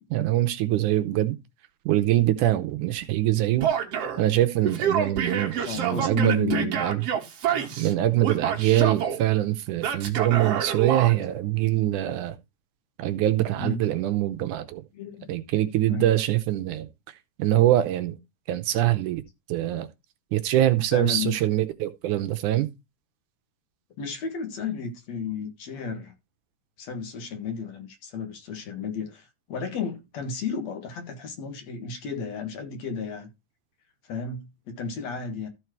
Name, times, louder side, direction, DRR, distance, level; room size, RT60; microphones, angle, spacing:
voice 1, 0.1-1.4 1.9-3.7 4.2-7.0 7.8-12.4 13.0-14.8 15.3-16.9 17.4-18.1 18.5-19.2 19.5-19.9 20.3-22.7, right 14 dB, 75° right, 2.1 m, -24 dB
Male speech man speaking / Yell, 3.6-4.2 4.6-7.9 8.2-9.2 9.8-11.1, right 8 dB, 55° right, 2.1 m, -27 dB
voice 2, 5.6-6.8 7.5-7.8 13.6-13.9 14.9-15.3 15.9-16.1 20.9-21.3 24.0-26.1 26.8-33.3 34.0-35.5, left 6 dB, 60° left, 2.7 m, -33 dB
14.0 x 4.7 x 4.5 m
omnidirectional pair, 3.7 m